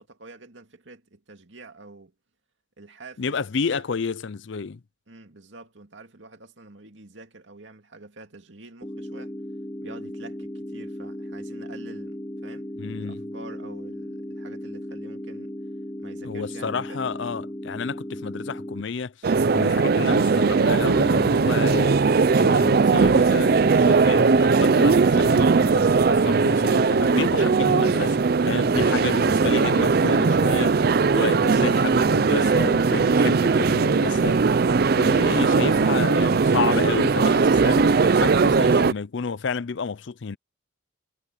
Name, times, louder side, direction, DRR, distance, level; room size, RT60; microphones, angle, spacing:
voice 1, 0.0-2.1 2.8-3.4 3.7-3.9 5.1-9.3 9.8-12.7 13.0-15.5 16.0-17.0, right 2 dB, 65° right, 2.5 m, -46 dB
voice 2, 3.2-4.8 12.8-13.2 16.2-22.0 22.4-34.4 35.0-40.4, left 5 dB, 65° left, 0.5 m, -31 dB
sound 1, 8.8-18.8, left 1 dB, 15° left, 0.9 m, -36 dB
sound 2, 19.2-38.9, right 4 dB, 50° right, 0.4 m, -19 dB
head